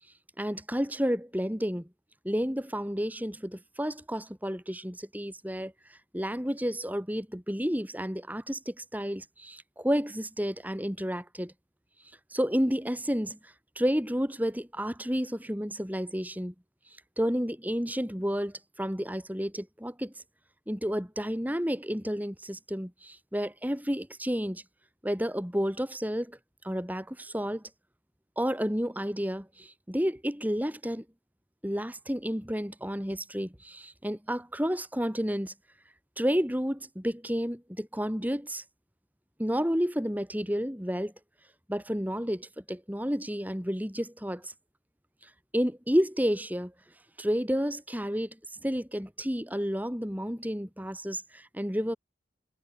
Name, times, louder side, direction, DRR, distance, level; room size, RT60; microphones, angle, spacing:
voice 1, 0.4-1.9 2.2-11.5 12.3-16.5 17.2-20.1 20.7-24.6 25.0-26.4 26.6-27.6 28.4-31.0 31.6-35.5 36.2-38.6 39.4-41.1 41.7-44.5 45.5-46.7 47.2-52.0, equal, 10° right, 5.4 m, -31 dB
head